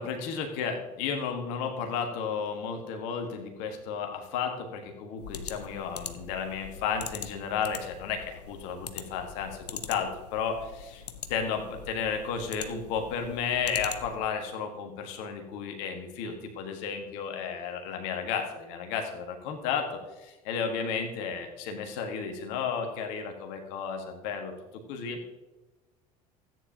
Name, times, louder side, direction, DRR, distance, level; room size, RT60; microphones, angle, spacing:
voice 1, 0.0-11.0 11.3-19.9 20.2-24.5 24.9-25.2, left 6 dB, 60° left, 4 dB, 1.5 m, -33 dB
sound 1, 5.2-14.3, left 7 dB, 85° left, 0.6 m, -43 dB
13.5 x 9.1 x 2.8 m, 1.1 s
figure-of-eight pair, 70°, 20 cm